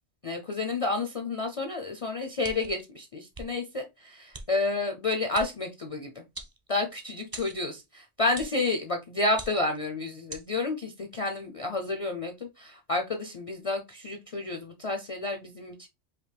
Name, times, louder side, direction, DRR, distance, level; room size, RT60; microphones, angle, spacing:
voice 1, 0.2-6.2 6.7-15.9, left 2 dB, 45° left, 4 dB, 0.5 m, -30 dB
sound 1, 2.4-2.8 3.3-3.5 4.3-4.5 5.3-5.5 6.3-6.9 7.3-7.6 8.3-8.6 9.3-9.8 10.3-10.5, right 2 dB, 25° right, 0.5 m, -41 dB
4.8 x 2.8 x 3.3 m, 0.23 s
omnidirectional pair, 1.2 m